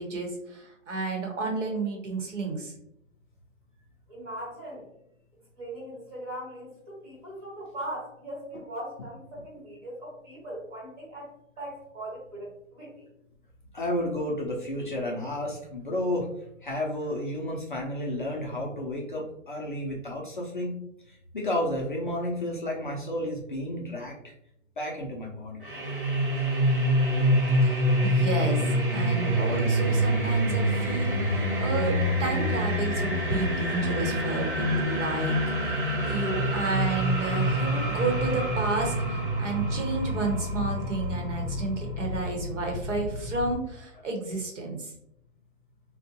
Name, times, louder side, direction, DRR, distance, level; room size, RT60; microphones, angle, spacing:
voice 1, 0.0-2.7 27.6-44.9, right 3 dB, 65° right, 2 dB, 1.0 m, -31 dB
voice 2, 4.1-4.9 5.5-13.1, right 1 dB, 20° right, -7 dB, 1.2 m, -40 dB
voice 3, 13.7-16.3 16.6-20.8 21.1-24.3 24.8-25.6, left 1 dB, 40° left, -2 dB, 0.5 m, -31 dB
sound 1, 25.6-43.6, equal, 40° right, 0.6 m, -26 dB
3.9 x 2.2 x 2.7 m, 0.77 s
hypercardioid pair, 180°, 39 cm